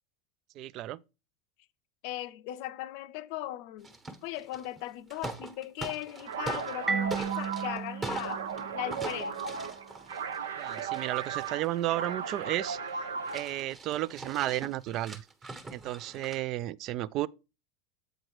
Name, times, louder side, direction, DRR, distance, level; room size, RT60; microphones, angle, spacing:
voice 1, 0.6-1.0 10.6-13.1 13.3-15.2 15.7-17.3, right 15 dB, 50° right, 0.3 m, -33 dB
voice 2, 2.0-3.9 4.2-8.4 8.7-9.4, left 14 dB, 60° left, 0.5 m, -38 dB
sound 1, 3.8-4.8 5.1-6.8 7.1-8.6 8.9-12.4 12.9-13.0 13.2-16.4, right 3 dB, 25° right, 1.3 m, -41 dB
sound 2, 6.2-13.6, right 6 dB, 85° right, 0.6 m, -37 dB
Marimba xylophone, 6.9-9.5, right 6 dB, 10° right, 0.7 m, -35 dB
7.9 x 4.5 x 4.6 m
hypercardioid pair, 90°, 0 cm